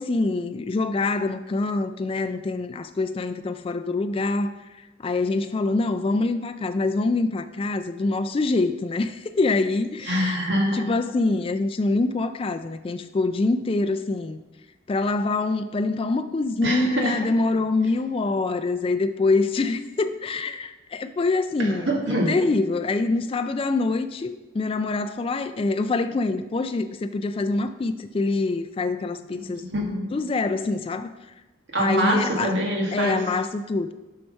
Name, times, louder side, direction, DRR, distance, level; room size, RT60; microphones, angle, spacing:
voice 1, 0.0-4.5 5.0-10.4 10.7-14.4 14.9-21.9 22.3-29.6 30.1-31.1 31.8-32.6 32.9-33.9, left 3 dB, 30° left, 10 dB, 0.3 m, -25 dB
voice 2, 10.0-10.8 16.6-17.2 21.6-22.3 29.3-30.1 31.7-33.2, equal, 65° right, -1 dB, 1.8 m, -25 dB
7.6 x 5.8 x 5.3 m, 1.1 s
head